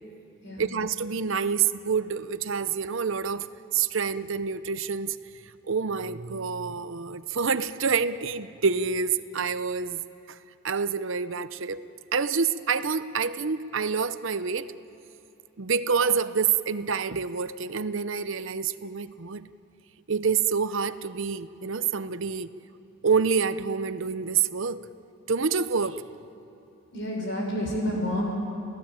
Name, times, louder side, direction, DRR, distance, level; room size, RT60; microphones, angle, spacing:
voice 1, 0.6-3.5 3.7-5.2 5.7-10.0 10.3-10.4 10.6-11.8 12.1-14.7 15.6-19.5 20.1-22.5 23.0-24.8 25.3-26.0, right 5 dB, 60° right, 13 dB, 0.7 m, -27 dB
voice 2, 26.9-28.4, equal, 55° left, 0 dB, 6.0 m, -29 dB
29.0 x 17.0 x 9.0 m, 2.9 s
head